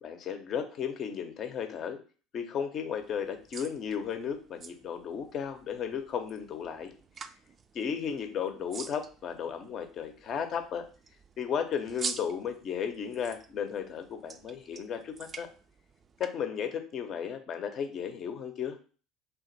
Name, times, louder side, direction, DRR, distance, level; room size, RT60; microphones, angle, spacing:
voice 1, 0.0-2.0 2.3-6.9 7.7-10.8 11.4-15.5 16.2-18.8, left 7 dB, 45° left, 6 dB, 0.6 m, -34 dB
sound 1, 3.0-16.3, right 5 dB, 35° right, 0.3 m, -46 dB
3.3 x 2.5 x 3.9 m, 0.38 s
figure-of-eight pair, 65°, 0 cm